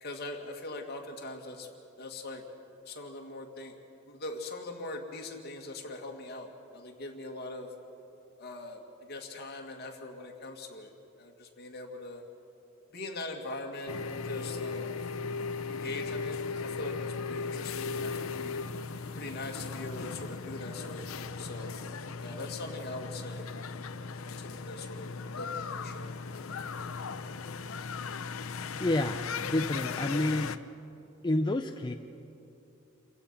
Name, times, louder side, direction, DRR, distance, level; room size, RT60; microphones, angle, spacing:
voice 1, 0.0-1.7 2.0-2.4 2.9-3.8 4.1-7.7 8.4-12.2 12.9-15.0 15.6-18.6 19.2-21.7 22.2-23.8 24.0-25.1 25.4-26.1, left 2 dB, 50° left, 1 dB, 2.2 m, -42 dB
sound 1, 13.9-30.6, left 4 dB, 85° left, 0.7 m, -37 dB
voice 2, 28.8-30.6 31.2-31.9, left 1 dB, 20° left, 5 dB, 0.5 m, -29 dB
28.5 x 16.0 x 5.8 m, 2.8 s
head